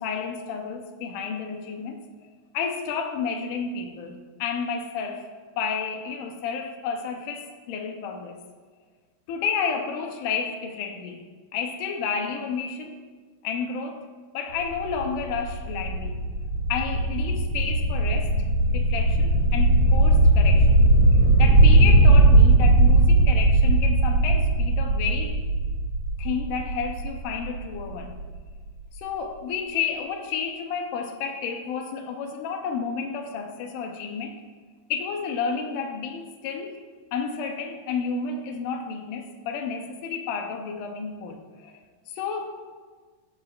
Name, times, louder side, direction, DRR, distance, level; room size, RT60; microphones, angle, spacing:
voice 1, 0.0-5.3 5.6-8.4 9.3-11.2 11.5-13.0 13.4-14.1 14.3-16.2 16.7-18.3 18.7-20.8 21.1-25.4 26.2-28.2 28.9-34.4 34.9-36.8 37.1-42.6, left 6 dB, 80° left, 3 dB, 2.2 m, -31 dB
sound 1, 14.5-28.2, right 2 dB, 40° right, 3.5 m, -19 dB
16.5 x 5.7 x 2.5 m, 1.5 s
omnidirectional pair, 3.9 m